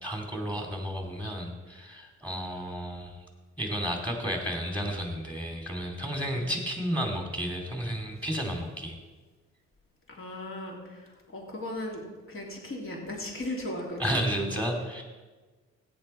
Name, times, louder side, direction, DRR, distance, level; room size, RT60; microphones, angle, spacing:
voice 1, 0.0-3.2 3.6-9.0 14.0-15.0, equal, 5° left, 2 dB, 2.5 m, -32 dB
voice 2, 10.1-14.2, left 1 dB, 45° left, -1 dB, 3.2 m, -37 dB
14.0 x 9.2 x 4.4 m, 1.3 s
cardioid pair, 90°, 30 cm